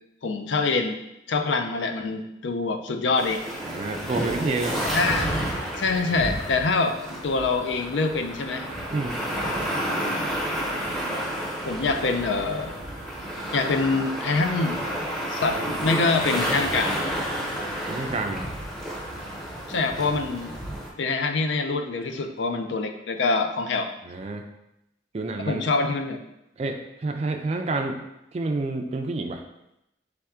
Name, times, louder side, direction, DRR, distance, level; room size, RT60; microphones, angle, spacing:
voice 1, 0.2-1.0 1.3-3.4 4.9-5.3 5.8-8.7 11.7-12.7 13.5-14.8 15.3-17.0 19.7-20.5 21.0-23.9 25.4-26.2, left 3 dB, 75° left, 7 dB, 0.5 m, -25 dB
sound 1, 3.2-20.9, equal, ahead, 0.6 m, -30 dB
voice 2, 3.6-4.8 8.9-9.2 17.9-18.5 24.0-24.4 25.1-25.6 26.6-28.0 28.3-29.4, right 3 dB, 35° right, 4 dB, 0.3 m, -29 dB
4.4 x 3.4 x 3.5 m, 0.86 s
head